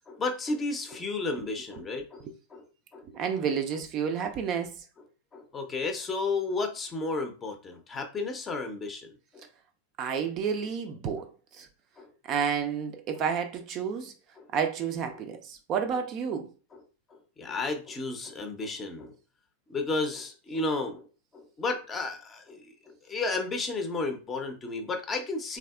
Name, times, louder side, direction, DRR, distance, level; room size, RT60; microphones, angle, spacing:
voice 1, 0.1-2.7 2.9-3.1 3.3-3.4 5.3-9.4 12.0-12.1 12.4-12.5 14.4-14.5 15.1-15.2 16.3-16.4 16.7-16.8 17.1-19.1 19.7-21.1 21.3-25.6, left 3 dB, 20° left, 0.6 m, -33 dB
voice 2, 3.1-4.7 10.0-11.3 11.5-11.7 12.2-14.1 14.5-16.5, right 7 dB, 35° right, 0.4 m, -30 dB
3.3 x 2.3 x 2.3 m
figure-of-eight pair, 90°, 0 cm